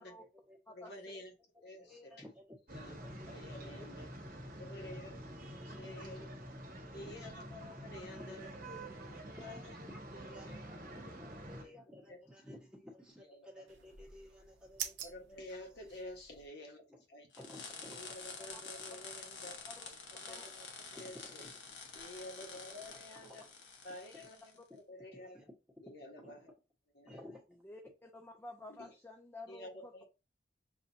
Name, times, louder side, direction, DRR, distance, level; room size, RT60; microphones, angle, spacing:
voice 1, 0.2-0.6 0.9-1.2 1.5-2.5 3.0-3.3 3.6-3.7 5.7-6.3 6.8-7.3 7.9-8.4 9.6-9.7 10.1-16.0 17.4-18.1 18.6-18.7 21.0-21.5 22.8-23.5 25.1-25.5 26.2-26.3 27.0-27.4, left 1 dB, 5° right, -2 dB, 1.4 m, -55 dB
voice 2, 0.7-1.3 1.6-2.1 2.7-4.1 4.6-5.1 5.6-6.3 6.9-8.5 8.9-9.6 10.5-10.6 11.6-11.7 12.1-12.2 13.2-13.6 15.0-17.3 17.9-19.6 20.1-20.7 20.9-21.5 21.9-23.4 23.8-25.4 25.8-26.5 26.9-27.1 28.7-28.9 29.5-30.0, left 1 dB, 60° left, 1 dB, 1.4 m, -50 dB
sound 1, 2.7-11.6, right 1 dB, 50° right, 1.2 m, -47 dB
sound 2, 13.7-16.5, right 9 dB, 75° right, 0.8 m, -47 dB
sound 3, 17.3-24.6, left 5 dB, 80° left, 1.2 m, -49 dB
voice 3, 27.6-30.0, left 2 dB, 10° left, 2 dB, 0.4 m, -51 dB
6.4 x 2.7 x 2.7 m, 0.28 s
head